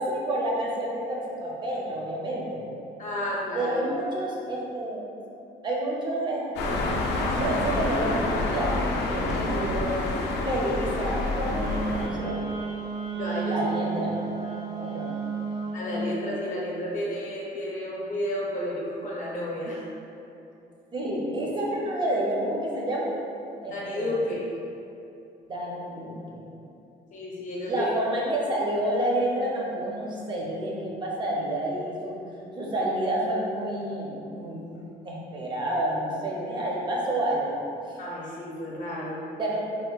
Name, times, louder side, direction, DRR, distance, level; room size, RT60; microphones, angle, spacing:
voice 1, 0.0-2.6 3.5-5.0 5.6-8.7 9.1-10.0 10.4-12.4 13.5-14.5 14.7-15.1 20.9-23.2 23.6-24.1 25.5-26.4 27.7-32.2 32.6-37.6 37.9-38.0 39.3-39.7, right 1 dB, 25° right, -4 dB, 0.5 m, -29 dB
voice 2, 3.0-3.8 13.2-13.6 15.7-19.8 23.7-24.5 27.1-27.8 38.0-39.2, left 1 dB, 45° left, -5 dB, 0.6 m, -31 dB
sound 1, 6.6-12.1, left 2 dB, 85° left, 0.4 m, -28 dB
Wind instrument woodwind instrument, 11.5-15.9, right 5 dB, 75° right, 0.9 m, -32 dB
4.3 x 2.1 x 2.2 m, 2.8 s
cardioid pair, 165°, 17 cm